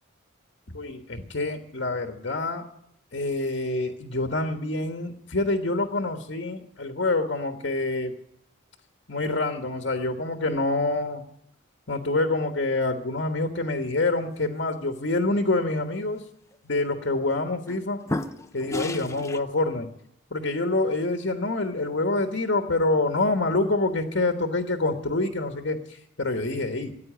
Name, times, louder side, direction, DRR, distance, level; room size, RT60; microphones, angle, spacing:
voice 1, 0.7-2.7 3.1-8.1 9.1-11.2 11.9-16.2 16.6-18.0 18.5-19.9 20.3-26.9, left 2 dB, 60° left, 5 dB, 1.3 m, -26 dB
sound 1, 16.5-16.8 17.4-17.8 18.1-19.4, left 1 dB, 15° left, 0.6 m, -32 dB
15.0 x 9.4 x 9.3 m, 0.75 s
head